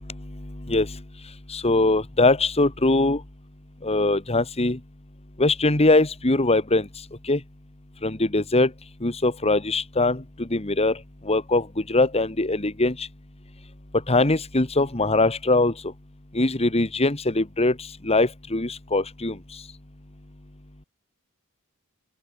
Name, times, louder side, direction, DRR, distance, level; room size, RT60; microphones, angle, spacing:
voice 1, 0.4-1.0 1.5-3.2 3.8-4.8 5.4-6.9 7.2-7.4 8.0-8.7 9.0-11.0 11.2-13.1 14.1-15.7 16.3-17.8 18.0-19.4, left 2 dB, 30° left, 1.6 m, -22 dB
open air
head